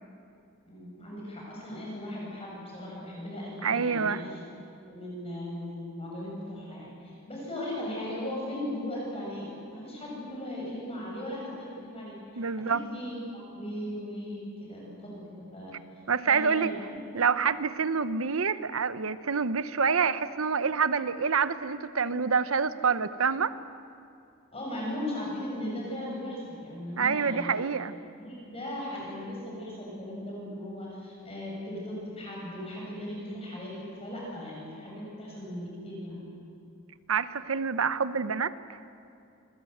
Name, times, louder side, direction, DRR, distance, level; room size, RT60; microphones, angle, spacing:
voice 1, 0.6-4.4 4.8-12.2 12.7-15.7 16.2-17.0 24.5-27.6 28.2-36.2, left 1 dB, 30° left, -3 dB, 6.8 m, -38 dB
voice 2, 3.6-4.2 12.4-12.8 16.1-16.7 17.1-23.5 27.0-27.9 37.1-38.5, right 5 dB, 75° right, 13 dB, 0.9 m, -27 dB
27.0 x 22.0 x 8.0 m, 2.5 s
head